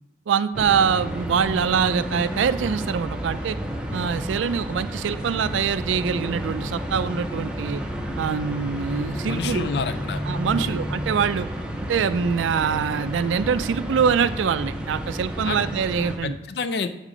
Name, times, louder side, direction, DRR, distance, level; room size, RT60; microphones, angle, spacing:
voice 1, 0.3-3.6 3.9-7.8 8.2-9.6 10.3-11.5 11.9-16.3, right 6 dB, 90° right, 13 dB, 0.4 m, -24 dB
sound 1, 0.5-15.6, left 1 dB, 80° left, 1.0 m, -44 dB
sound 2, 0.5-16.2, equal, 5° right, 0.5 m, -31 dB
voice 2, 9.2-10.2 10.5-10.8 15.4-15.6 16.2-16.9, left 4 dB, 60° left, 10 dB, 0.4 m, -28 dB
8.3 x 3.6 x 5.0 m, 0.92 s
head